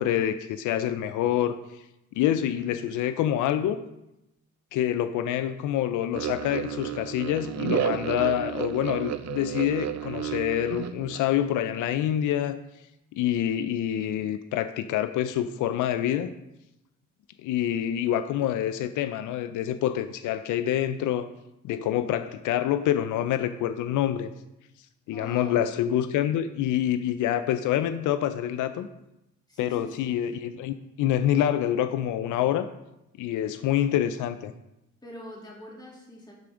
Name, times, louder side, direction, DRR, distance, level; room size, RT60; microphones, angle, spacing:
voice 1, 0.0-1.8 2.1-3.8 4.7-12.6 13.1-16.3 17.4-21.3 21.6-24.3 25.1-28.9 29.6-32.7 33.2-34.5, left 11 dB, 85° left, 11 dB, 0.5 m, -26 dB
sound 1, 6.1-11.2, right 10 dB, 65° right, 0.6 m, -31 dB
voice 2, 25.1-25.7 29.5-30.1 35.0-36.3, equal, 15° left, -4 dB, 3.1 m, -43 dB
12.0 x 4.9 x 3.8 m, 0.89 s
cardioid pair, 90°, 30 cm